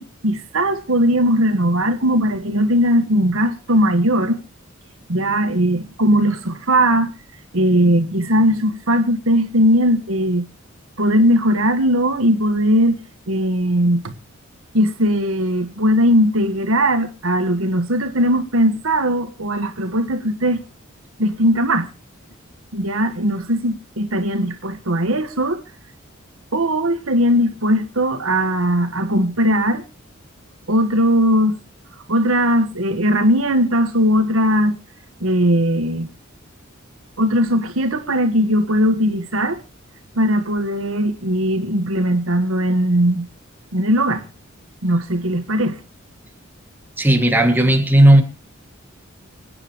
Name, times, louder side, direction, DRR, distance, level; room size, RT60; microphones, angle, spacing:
voice 1, 0.0-4.4 5.1-7.1 7.5-10.5 11.0-14.1 14.7-20.6 21.2-21.9 22.7-25.6 26.5-29.8 30.7-31.6 32.1-34.8 35.2-36.1 37.2-39.6 40.2-43.3 43.7-44.3 44.8-45.8, equal, 90° right, 1.6 m, -19 dB
voice 2, 47.0-48.2, right 1 dB, 10° right, 2.3 m, -13 dB
26.0 x 9.6 x 3.1 m
head